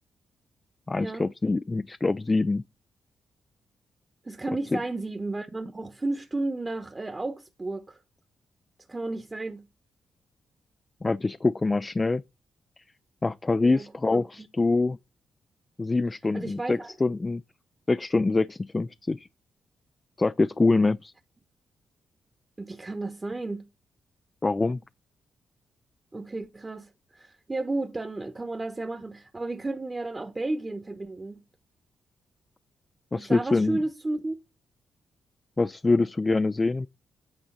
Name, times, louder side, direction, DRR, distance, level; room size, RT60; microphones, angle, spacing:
voice 1, 0.9-2.6 11.0-12.2 12.8-12.9 13.2-15.0 15.8-17.4 17.9-19.3 20.2-21.1 24.4-24.8 33.1-33.8 35.6-36.9, left 3 dB, 30° left, 0.3 m, -25 dB
voice 2, 4.2-8.0 8.9-9.7 13.6-14.5 16.3-16.9 22.6-23.7 26.1-31.4 33.1-34.4, right 2 dB, 30° right, 1.1 m, -33 dB
8.9 x 3.8 x 5.5 m
supercardioid pair, 45°, 0 cm